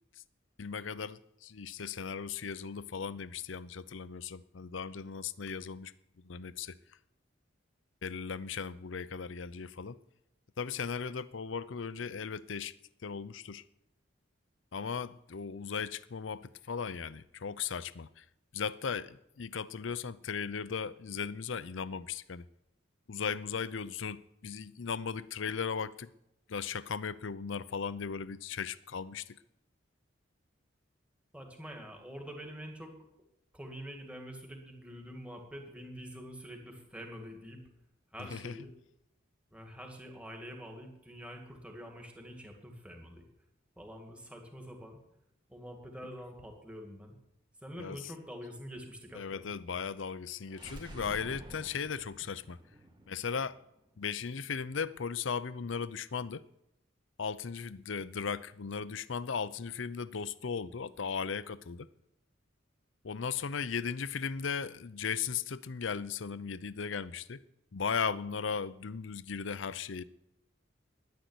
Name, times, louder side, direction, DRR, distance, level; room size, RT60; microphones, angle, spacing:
voice 1, 0.6-5.9 6.2-6.8 8.0-10.0 10.6-12.7 13.0-13.6 14.7-18.2 18.5-22.5 23.1-26.1 26.5-29.4 38.2-38.6 47.8-48.0 49.1-52.6 53.1-53.6 54.0-56.4 57.2-61.9 63.0-67.4 67.7-70.0, left 6 dB, 75° left, 0.6 m, -37 dB
voice 2, 31.3-32.9 33.5-37.6 38.1-38.7 39.5-43.2 43.8-45.0 45.5-47.2 47.6-49.5, equal, 5° right, 2.3 m, -46 dB
sound 1, 50.5-54.3, right 1 dB, 25° right, 2.3 m, -50 dB
10.5 x 10.0 x 9.8 m
head